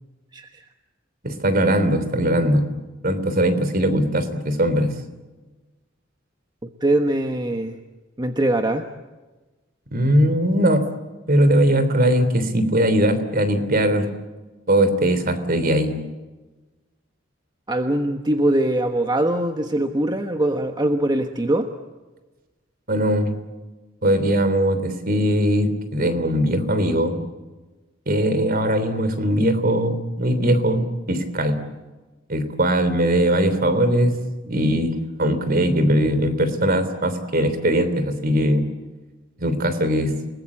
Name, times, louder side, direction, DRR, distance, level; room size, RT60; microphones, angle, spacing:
voice 1, 0.3-0.6 6.6-7.8 8.2-8.9 17.7-21.7, right 1 dB, 20° right, 6 dB, 1.2 m, -22 dB
voice 2, 1.2-2.7 3.0-4.9 9.9-10.8 11.3-14.1 14.7-15.9 22.9-23.3 24.0-27.1 28.1-31.6 32.3-34.1 34.4-38.6 39.4-40.2, right 1 dB, 50° right, 11 dB, 3.4 m, -20 dB
30.0 x 20.0 x 8.5 m, 1.2 s
head